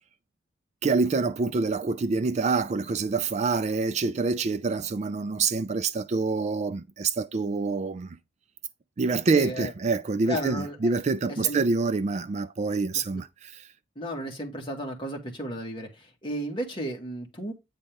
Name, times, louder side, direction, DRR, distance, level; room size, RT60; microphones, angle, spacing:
voice 1, 0.8-8.2 9.0-13.7, right 4 dB, 35° right, 0.4 m, -26 dB
voice 2, 9.3-9.7 10.3-10.8 11.3-11.6 14.0-17.5, equal, 25° left, 1.8 m, -33 dB
9.0 x 4.1 x 3.5 m
head